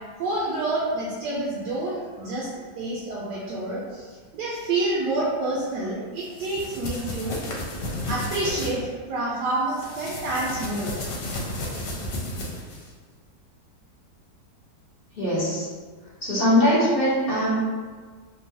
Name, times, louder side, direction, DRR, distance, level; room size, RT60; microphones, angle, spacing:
voice 1, 0.2-2.5 2.8-7.4 7.9-10.9, right 2 dB, 75° right, -6 dB, 1.1 m, -28 dB
sound 1, 6.2-8.7 9.7-12.9, left 1 dB, 80° left, 1.2 m, -33 dB
voice 2, 15.1-15.7 16.2-17.6, equal, 50° left, -10 dB, 0.6 m, -21 dB
3.1 x 2.3 x 2.6 m, 1.5 s
omnidirectional pair, 2.0 m